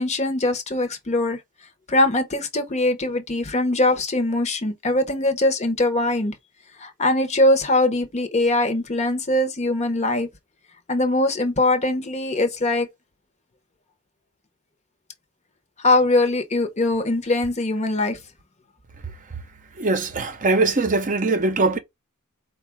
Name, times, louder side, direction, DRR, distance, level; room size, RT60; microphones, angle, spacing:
voice 1, 0.0-1.4 1.9-6.3 6.8-10.3 10.9-12.9 15.8-18.2, left 2 dB, 30° left, 0.9 m, -21 dB
voice 2, 19.8-21.8, right 3 dB, 35° right, 0.7 m, -21 dB
4.6 x 2.4 x 4.5 m
head